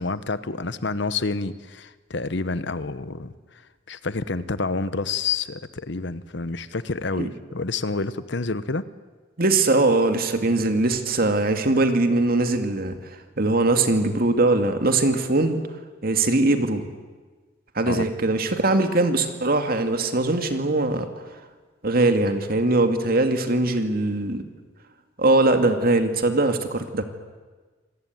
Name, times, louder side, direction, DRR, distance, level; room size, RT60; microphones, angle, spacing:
voice 1, 0.0-3.6 3.9-8.8 17.9-18.1, left 3 dB, 65° left, 14 dB, 1.0 m, -28 dB
voice 2, 9.4-13.0 13.4-15.6 16.0-16.9 17.8-21.1 21.8-24.4 25.2-27.0, right 2 dB, 50° right, 7 dB, 2.2 m, -21 dB
26.5 x 18.5 x 9.4 m, 1.4 s
head